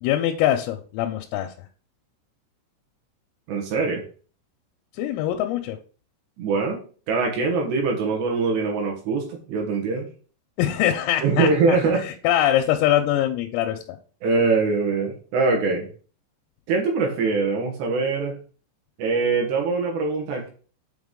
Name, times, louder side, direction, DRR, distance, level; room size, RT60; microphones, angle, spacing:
voice 1, 0.0-1.5 5.0-5.8 10.6-11.5 12.0-13.8, left 12 dB, 85° left, 4 dB, 3.2 m, -23 dB
voice 2, 3.5-4.0 6.4-6.8 7.1-10.1 11.2-12.1 14.2-15.9 16.7-18.4 19.0-20.5, right 4 dB, 70° right, 0 dB, 2.8 m, -23 dB
7.9 x 3.8 x 3.7 m, 0.39 s
omnidirectional pair, 5.9 m